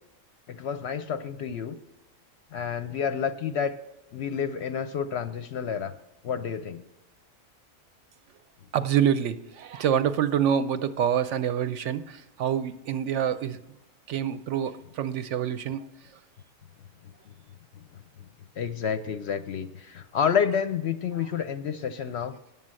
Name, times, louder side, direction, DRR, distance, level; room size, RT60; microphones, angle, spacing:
voice 1, 0.5-1.8 2.5-3.8 4.1-5.9 6.2-6.8 18.6-22.3, left 7 dB, 65° left, 11 dB, 0.7 m, -29 dB
voice 2, 8.7-13.6 14.1-15.9, right 9 dB, 70° right, 12 dB, 0.8 m, -26 dB
9.7 x 7.3 x 7.5 m, 0.92 s
omnidirectional pair, 1.4 m